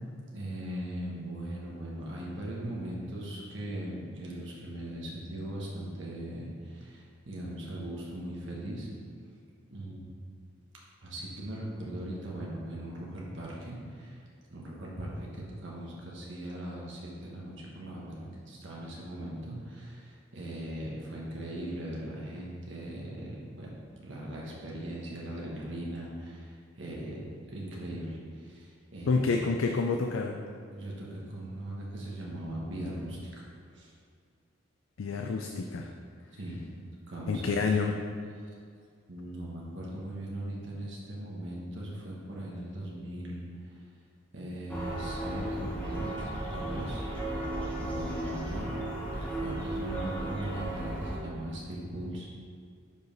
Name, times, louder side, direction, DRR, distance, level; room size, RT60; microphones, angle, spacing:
voice 1, 0.3-8.9 9.7-10.1 11.0-14.2 14.5-27.2 27.5-29.4 30.7-33.5 33.7-33.9 35.6-35.7 36.3-36.6 37.1-37.5 39.1-43.7 44.3-47.0 47.8-48.8 49.1-52.3, right 1 dB, 65° right, -4 dB, 1.2 m, -39 dB
voice 2, 29.1-30.4 35.0-35.9 37.3-38.0, left 4 dB, 80° left, 3 dB, 0.4 m, -28 dB
sound 1, 44.7-51.2, right 1 dB, 5° left, 1.1 m, -35 dB
5.3 x 4.8 x 5.2 m, 2.2 s
head